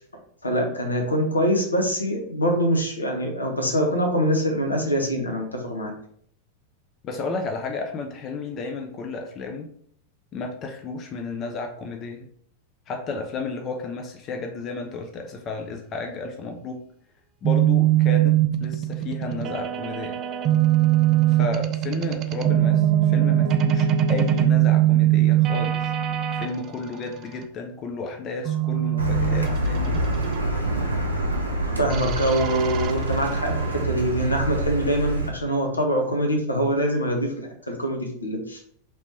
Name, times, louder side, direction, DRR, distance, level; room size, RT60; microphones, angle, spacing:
voice 1, 0.4-5.9 31.8-38.6, equal, 80° left, 2 dB, 0.7 m, -24 dB
voice 2, 7.0-9.7 10.3-12.3 12.9-16.8 17.4-20.2 21.3-25.9 26.3-30.0, left 3 dB, 30° left, 3 dB, 0.5 m, -32 dB
sound 1, 17.5-26.5 28.5-30.4 31.9-33.8, right 12 dB, 35° right, 0.3 m, -22 dB
Car, 29.0-35.3, right 1 dB, 85° right, 0.6 m, -26 dB
3.0 x 3.0 x 3.2 m, 0.63 s
figure-of-eight pair, 90°, 0 cm